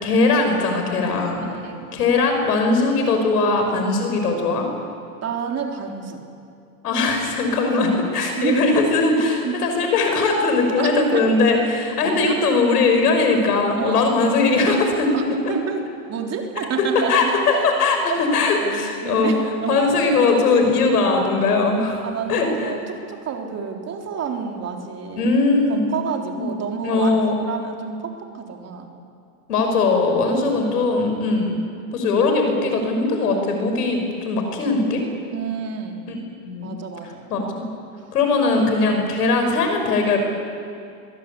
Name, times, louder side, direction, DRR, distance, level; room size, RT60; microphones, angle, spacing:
voice 1, 0.0-1.4 1.9-4.7 6.8-15.2 15.5-15.6 17.1-19.3 19.7-22.0 22.3-22.7 25.2-25.9 26.3-26.4 26.8-27.4 29.5-31.6 31.9-35.0 36.4-36.7 37.3-37.6 38.1-40.2, left 3 dB, 90° left, 4 dB, 6.1 m, -20 dB
voice 2, 1.4-1.9 5.2-6.2 8.4-8.6 9.4-9.6 10.8-11.3 12.0-12.2 13.8-14.2 15.1-17.7 18.1-18.3 18.6-19.8 22.0-25.3 25.7-27.2 27.5-28.9 30.1-30.6 35.3-36.1 36.6-37.3, right 6 dB, 35° right, 2 dB, 3.9 m, -29 dB
22.5 x 22.0 x 8.6 m, 2.4 s
supercardioid pair, 115°, 45 cm